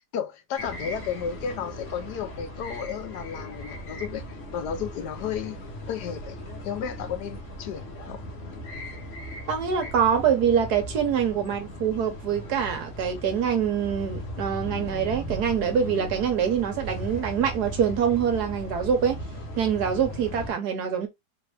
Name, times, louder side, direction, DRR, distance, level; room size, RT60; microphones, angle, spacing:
voice 1, 0.1-5.6 5.9-8.3, left 8 dB, 75° left, 1.2 m, -33 dB
sound 1, 0.6-20.5, equal, 50° left, 1.3 m, -37 dB
voice 2, 9.5-19.2 19.6-21.1, right 7 dB, 65° right, 1.4 m, -25 dB
3.7 x 2.6 x 3.3 m
omnidirectional pair, 1.9 m